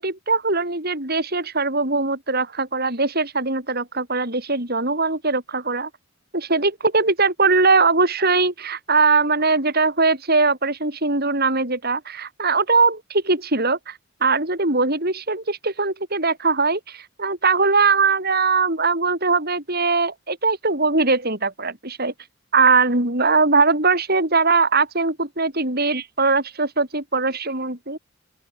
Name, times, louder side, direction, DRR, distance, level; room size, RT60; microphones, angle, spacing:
voice 1, 0.0-5.9 6.3-22.1 22.5-28.0, right 4 dB, 45° right, 6.3 m, -21 dB
open air
head